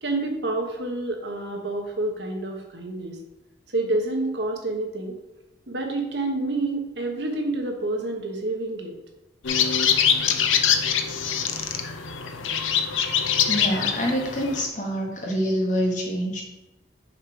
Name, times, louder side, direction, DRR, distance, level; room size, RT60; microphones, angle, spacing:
voice 1, 0.0-3.2 3.7-5.2 5.7-8.9, right 2 dB, 60° right, 2 dB, 1.2 m, -28 dB
sound 1, 9.4-14.7, left 7 dB, 85° left, 0.7 m, -24 dB
voice 2, 13.5-16.4, equal, 40° left, 0 dB, 1.5 m, -26 dB
6.5 x 5.0 x 4.7 m, 0.97 s
head